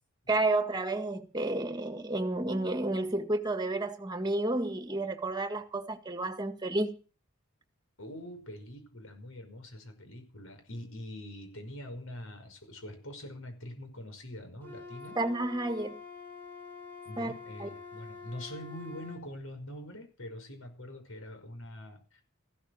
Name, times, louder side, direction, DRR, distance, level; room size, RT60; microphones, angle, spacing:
voice 1, 0.3-6.9 15.1-16.0 17.2-17.3 17.6-17.7, right 2 dB, 20° right, 1.8 m, -31 dB
voice 2, 8.0-15.2 17.1-22.2, left 1 dB, 80° left, 5.5 m, -44 dB
Wind instrument woodwind instrument, 14.6-19.2, left 4 dB, 10° left, 5.2 m, -46 dB
15.0 x 13.0 x 6.4 m
head